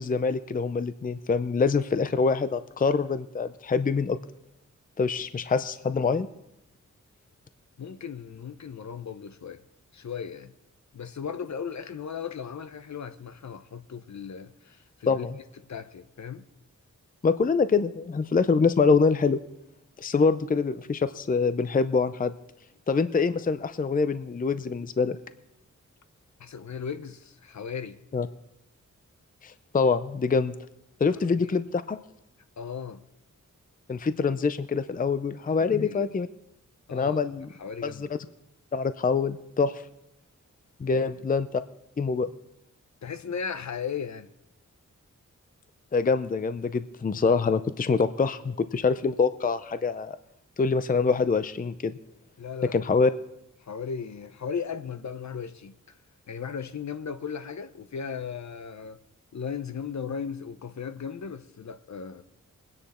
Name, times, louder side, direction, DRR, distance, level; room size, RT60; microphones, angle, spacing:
voice 1, 0.0-4.2 5.0-6.3 15.1-15.3 17.2-19.4 20.0-22.3 22.9-25.2 28.1-28.3 29.4-30.5 31.0-32.0 33.9-36.3 36.9-37.5 37.8-38.1 38.7-39.7 40.8-41.6 42.0-42.3 45.9-50.2 50.6-51.9 52.6-53.1, left 4 dB, 25° left, 0.5 m, -25 dB
voice 2, 7.8-9.6 9.9-10.5 10.9-15.3 15.7-16.4 26.4-28.0 31.4-31.6 32.6-33.0 35.6-36.1 36.9-37.2 37.6-38.1 40.9-41.1 43.0-44.3 52.4-53.1 53.6-56.0 56.3-59.0 59.3-62.2, left 6 dB, 60° left, 0.8 m, -36 dB
21.5 x 9.9 x 4.3 m
wide cardioid pair, 80°, 31 cm